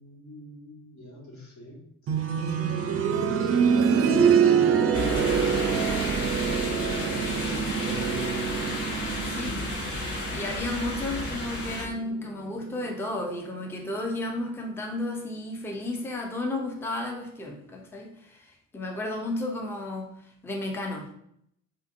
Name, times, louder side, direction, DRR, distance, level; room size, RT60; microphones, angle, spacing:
voice 1, 0.0-2.3 4.3-4.9 5.5-8.4, left 1 dB, 65° left, -3 dB, 1.4 m, -44 dB
sound 1, 2.1-12.8 14.2-14.3, right 7 dB, 50° right, 0.4 m, -26 dB
sound 2, 4.9-11.8, left 2 dB, 50° left, 1.1 m, -32 dB
voice 2, 9.1-9.8 10.3-21.1, left 2 dB, 10° left, 2 dB, 0.5 m, -33 dB
3.4 x 2.5 x 2.5 m, 0.72 s
cardioid pair, 90°, 30 cm